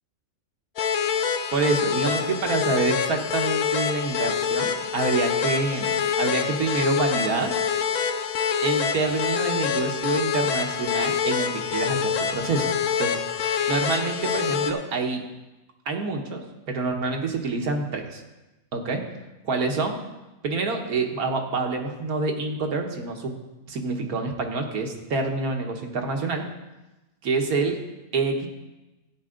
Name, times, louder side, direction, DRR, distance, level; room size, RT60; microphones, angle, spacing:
sound 1, 0.8-14.7, left 7 dB, 80° left, 1.2 m, -26 dB
voice 1, 1.5-7.5 8.6-12.7 13.0-15.2 15.8-18.2 18.7-19.0 19.4-20.0 20.4-23.3 23.7-26.5 27.2-27.8 28.1-28.5, right 3 dB, 90° right, 2 dB, 1.7 m, -27 dB
13.0 x 8.7 x 3.8 m, 1.0 s
omnidirectional pair, 1.5 m